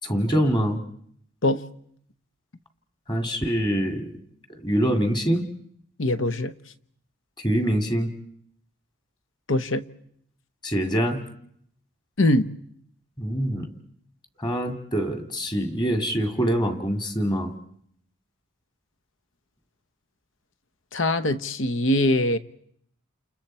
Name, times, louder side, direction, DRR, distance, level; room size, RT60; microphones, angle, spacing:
voice 1, 0.0-0.8 3.1-4.1 4.5-5.5 7.4-8.1 10.6-11.2 13.2-13.7 14.4-17.5, equal, 20° left, 2.1 m, -24 dB
voice 2, 6.0-6.5 9.5-9.9 12.2-12.5 20.9-22.4, left 1 dB, 70° left, 1.0 m, -22 dB
29.5 x 29.0 x 4.4 m
head